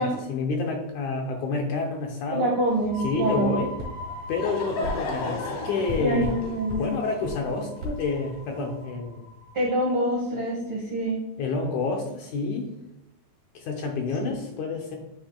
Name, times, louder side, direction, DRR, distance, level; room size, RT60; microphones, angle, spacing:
voice 1, 0.0-2.6 3.0-3.7 4.3-6.3 6.8-9.2 11.4-12.8 13.5-15.0, left 4 dB, 75° left, 2 dB, 1.8 m, -29 dB
voice 2, 2.3-3.6 6.0-7.0 9.5-11.2 14.2-14.3, right 1 dB, 80° right, -2 dB, 1.2 m, -26 dB
sound 1, 2.6-10.1, left 1 dB, 20° right, 0.8 m, -40 dB
sound 2, 3.8-3.9 4.8-5.0 5.9-6.4 6.7-6.8 7.2-7.4 7.8-8.0, equal, 50° right, 2.9 m, -32 dB
Laughter / Crowd, 4.0-8.7, left 2 dB, 60° left, 1.7 m, -35 dB
8.3 x 6.4 x 2.2 m, 0.93 s
omnidirectional pair, 4.0 m